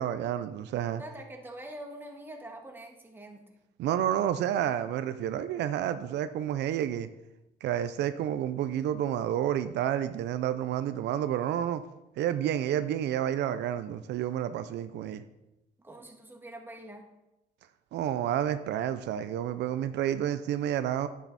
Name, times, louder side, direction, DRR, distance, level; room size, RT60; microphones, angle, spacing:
voice 1, 0.0-1.0 3.8-7.1 7.6-11.8 12.2-15.2 17.9-21.1, right 10 dB, 90° right, 11 dB, 0.6 m, -30 dB
voice 2, 1.0-3.4 15.8-17.0, right 1 dB, 10° right, 1 dB, 1.8 m, -44 dB
10.0 x 8.8 x 4.1 m, 0.93 s
cardioid pair, 115°, 17 cm